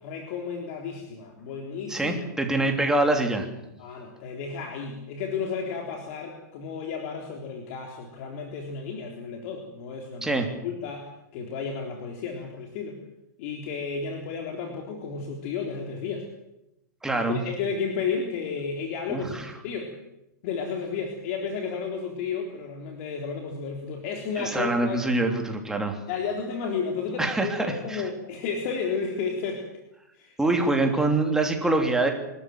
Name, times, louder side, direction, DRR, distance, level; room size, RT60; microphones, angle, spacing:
voice 1, 0.0-2.2 3.8-10.3 10.6-13.0 13.4-16.3 17.1-19.4 19.6-19.9 20.4-25.0 26.1-29.6 30.1-30.6, left 5 dB, 50° left, 2 dB, 3.7 m, -32 dB
voice 2, 1.9-3.5 10.2-10.5 17.0-17.4 19.1-19.5 24.4-26.0 27.2-28.1 30.4-32.1, right 2 dB, 5° right, 3 dB, 3.2 m, -25 dB
24.0 x 13.5 x 9.4 m, 0.89 s
hypercardioid pair, 135°, 10 cm